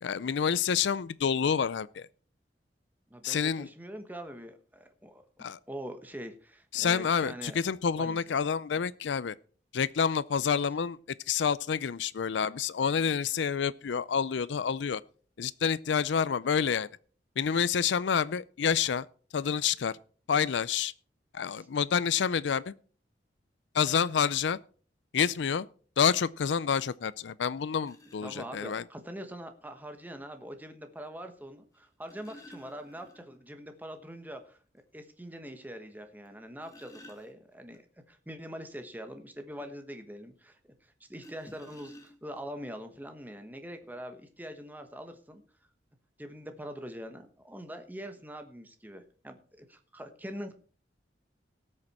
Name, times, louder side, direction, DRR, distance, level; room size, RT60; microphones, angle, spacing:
voice 1, 0.0-2.1 3.2-3.7 5.4-5.6 6.7-9.3 9.7-11.0 11.3-15.0 15.4-16.9 17.4-19.1 19.3-20.0 20.3-20.9 21.3-22.7 23.7-24.6 25.1-25.7 26.0-28.8, left 7 dB, 85° left, 0.5 m, -28 dB
voice 2, 3.1-7.6 8.0-8.2 21.6-21.7 28.2-34.6 34.9-45.4 46.2-50.5, equal, 10° right, 1.2 m, -43 dB
sound 1, 27.8-28.5 29.8-29.9 31.7-33.5 33.8-33.9 34.3-34.4 34.9-35.0 36.3-37.8 41.1-42.5 43.4-43.5 43.8-44.0, equal, 20° left, 1.7 m, -54 dB
18.0 x 6.5 x 4.2 m
head